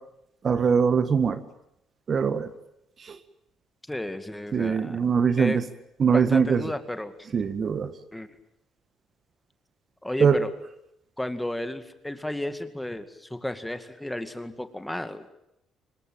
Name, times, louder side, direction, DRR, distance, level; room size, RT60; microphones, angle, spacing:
voice 1, 0.4-1.4 2.1-2.5 3.1-3.2 4.5-5.6 6.0-6.6 7.3-7.9 10.2-10.4, right 6 dB, 40° right, 12 dB, 1.7 m, -22 dB
voice 2, 3.9-5.0 5.4-5.6 6.1-7.1 8.1-8.3 10.0-10.5 11.2-15.3, left 1 dB, 5° left, 10 dB, 2.2 m, -33 dB
25.5 x 21.0 x 9.0 m, 0.81 s
cardioid pair, 105°, 0 cm